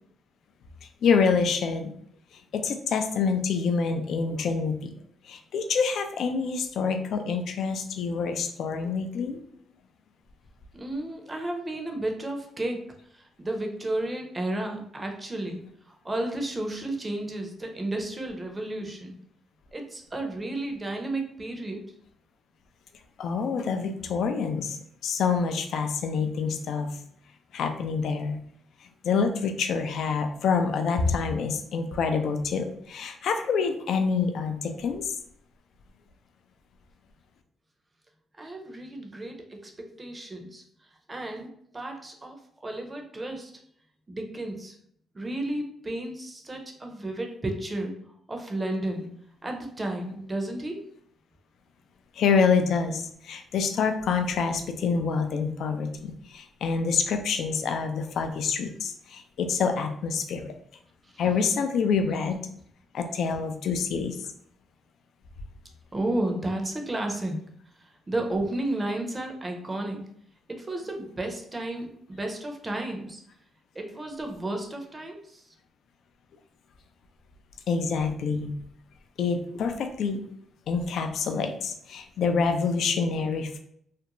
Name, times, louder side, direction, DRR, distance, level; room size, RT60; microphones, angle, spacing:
voice 1, 1.0-1.9 2.5-4.9 5.2-9.4 23.2-27.0 27.5-28.4 29.0-35.1 52.1-60.5 61.2-62.4 62.9-64.3 77.7-78.5 79.2-80.2 80.7-83.6, left 5 dB, 70° left, 6 dB, 0.3 m, -27 dB
voice 2, 10.7-12.8 13.1-19.2 19.7-21.8 38.4-40.6 41.1-41.5 41.7-42.4 42.6-43.5 44.1-44.7 45.1-47.9 48.3-49.1 49.4-50.9 65.9-67.4 67.8-70.0 70.5-73.2 73.7-75.4, right 1 dB, 20° right, 3 dB, 0.6 m, -32 dB
2.4 x 2.1 x 2.9 m, 0.67 s
cardioid pair, 90°, 0 cm